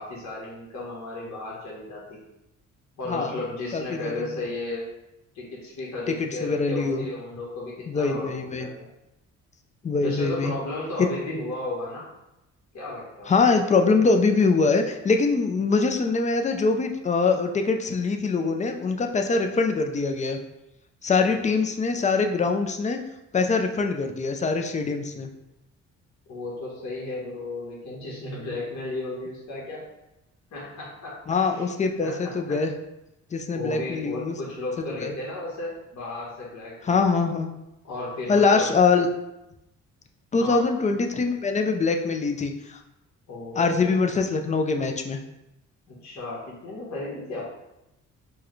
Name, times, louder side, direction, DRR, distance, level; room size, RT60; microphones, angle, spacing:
voice 1, 0.0-2.2 3.0-4.9 5.3-8.9 10.0-12.1 12.7-13.3 26.3-29.8 30.5-31.1 31.5-31.7 32.0-32.3 33.5-37.0 37.8-38.7 40.4-40.6 43.3-44.0 45.9-47.4, left 2 dB, 65° left, -5 dB, 1.2 m, -34 dB
voice 2, 3.1-3.4 3.7-4.1 6.2-7.1 7.9-8.7 9.8-10.5 11.0-11.1 13.3-20.4 21.0-23.0 23.3-25.3 31.3-32.7 33.3-34.3 35.0-35.1 36.8-37.5 38.3-39.1 40.3-42.8 43.6-45.2, left 4 dB, 25° left, 4 dB, 0.4 m, -23 dB
4.5 x 2.2 x 3.1 m, 0.91 s
cardioid pair, 90°, 30 cm